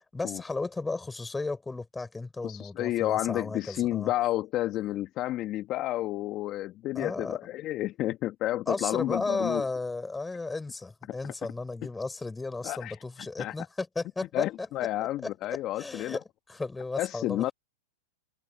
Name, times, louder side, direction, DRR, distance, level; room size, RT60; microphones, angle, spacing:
voice 1, 0.0-4.1 6.9-7.4 8.7-14.7 15.2-17.5, left 3 dB, 10° left, 5.7 m, -34 dB
voice 2, 2.4-9.6 11.2-11.3 12.6-13.0 13.4-13.5 14.3-16.2 17.0-17.5, left 15 dB, 40° left, 1.5 m, -30 dB
open air
hypercardioid pair, 110°, 0 cm